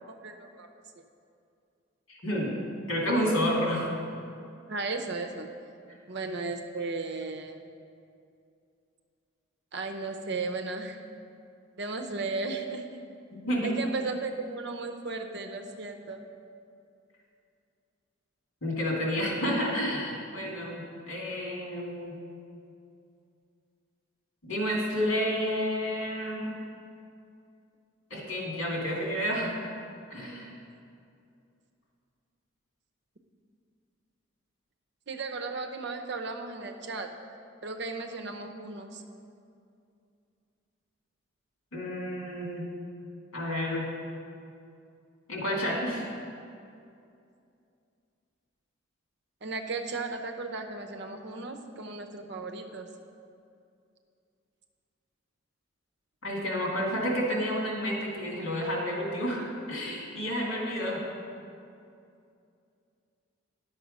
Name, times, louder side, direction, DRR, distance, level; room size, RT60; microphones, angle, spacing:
voice 1, 0.1-0.7 4.7-5.5 6.1-7.6 9.7-11.0 11.8-12.9 13.6-16.2 35.1-37.1 37.6-39.0 49.4-52.9, right 3 dB, 55° right, 5 dB, 0.7 m, -35 dB
voice 2, 2.1-2.6 2.9-4.0 13.3-13.7 18.6-22.2 24.4-26.5 28.1-29.5 30.1-30.5 41.7-42.6 43.3-43.9 45.3-46.1 56.2-61.0, equal, 80° left, -3 dB, 2.5 m, -30 dB
10.5 x 6.6 x 5.3 m, 2.5 s
head